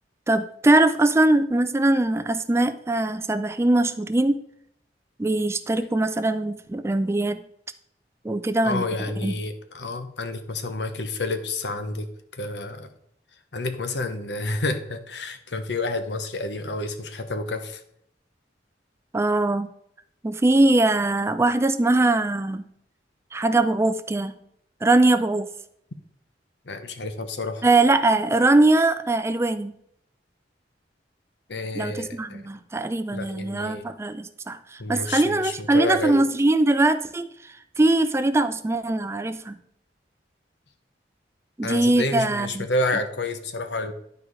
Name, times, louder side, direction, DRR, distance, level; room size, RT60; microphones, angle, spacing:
voice 1, 0.3-4.4 5.2-7.4 8.2-8.9 9.2-9.3 19.1-19.7 20.2-22.7 23.3-24.3 24.8-25.5 27.6-29.7 31.7-37.3 37.8-39.5 41.6-42.7, right 2 dB, 15° right, 11 dB, 0.3 m, -21 dB
voice 2, 8.6-12.1 12.3-12.9 13.5-17.8 26.7-27.6 31.5-32.4 33.1-33.8 34.8-36.2 41.6-43.9, left 2 dB, 75° left, 9 dB, 1.0 m, -29 dB
11.0 x 4.7 x 4.8 m, 0.73 s
head